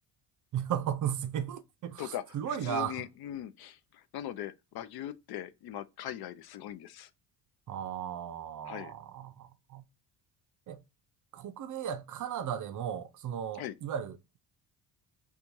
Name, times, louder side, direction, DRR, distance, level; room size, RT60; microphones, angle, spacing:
voice 1, 0.5-3.0 7.7-9.8 10.7-10.8 11.3-14.4, right 9 dB, 45° right, 0.5 m, -36 dB
voice 2, 2.0-7.1 8.7-8.9 13.6-13.7, left 12 dB, 60° left, 0.5 m, -40 dB
4.4 x 2.3 x 2.6 m
cardioid pair, 95°, 43 cm